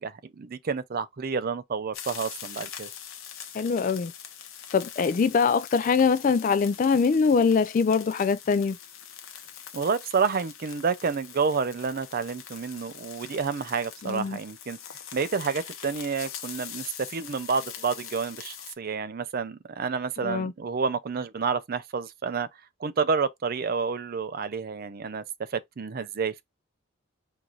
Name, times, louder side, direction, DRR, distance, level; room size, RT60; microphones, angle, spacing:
voice 1, 0.0-2.9 9.7-14.8 15.1-22.5 22.8-25.2 25.5-26.4, right 5 dB, 45° right, 0.4 m, -29 dB
sound 1, 1.9-18.7, left 9 dB, 75° left, 0.8 m, -43 dB
voice 2, 3.5-4.1 4.7-8.8 14.0-14.4 20.2-20.5, left 5 dB, 40° left, 0.3 m, -23 dB
4.6 x 2.5 x 3.8 m
head